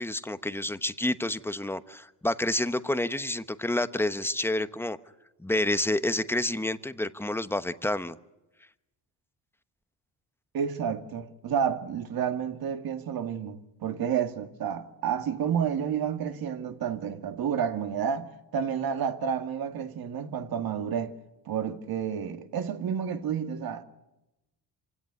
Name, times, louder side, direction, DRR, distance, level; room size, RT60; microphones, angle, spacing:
voice 1, 0.0-5.0 5.4-8.2, left 1 dB, 5° left, 1.0 m, -29 dB
voice 2, 10.5-21.1 21.5-23.8, right 8 dB, 60° right, 2.2 m, -30 dB
26.5 x 17.0 x 9.6 m
cardioid pair, 115°, 41 cm